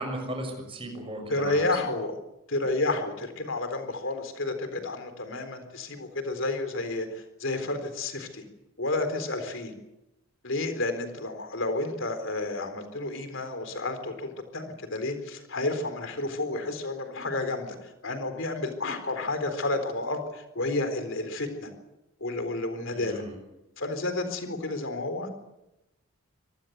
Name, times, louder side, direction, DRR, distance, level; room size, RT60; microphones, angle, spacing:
voice 1, 0.0-1.7 22.9-23.3, right 1 dB, 25° right, 4 dB, 6.5 m, -36 dB
voice 2, 1.3-2.1 2.5-8.4 8.8-9.7 10.4-21.7 22.2-23.2 23.8-25.3, left 2 dB, 60° left, 8 dB, 4.0 m, -31 dB
25.5 x 19.0 x 8.0 m, 0.92 s
head